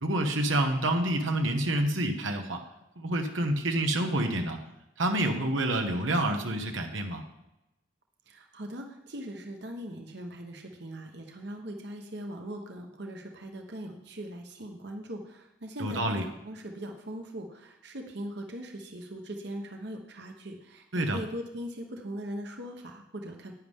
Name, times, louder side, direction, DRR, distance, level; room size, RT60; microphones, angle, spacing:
voice 1, 0.0-2.6 3.0-4.6 5.0-7.2 15.8-16.2 20.9-21.2, right 1 dB, 90° right, 4 dB, 1.3 m, -28 dB
voice 2, 8.3-23.5, equal, 60° right, 3 dB, 1.1 m, -40 dB
10.5 x 9.7 x 3.7 m, 0.91 s
head